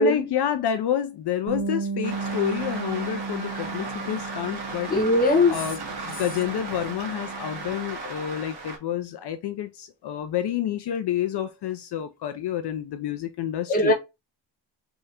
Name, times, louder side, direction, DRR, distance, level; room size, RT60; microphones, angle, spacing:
voice 1, 0.0-4.9 5.5-13.9, left 10 dB, 65° left, 0.5 m, -29 dB
Bass guitar, 1.5-7.7, right 5 dB, 85° right, 1.1 m, -35 dB
sound 1, 2.0-8.8, right 3 dB, 60° right, 1.4 m, -36 dB
voice 2, 4.9-5.5 13.7-13.9, left 2 dB, 20° left, 0.8 m, -20 dB
3.5 x 3.2 x 2.8 m
wide cardioid pair, 180°, 44 cm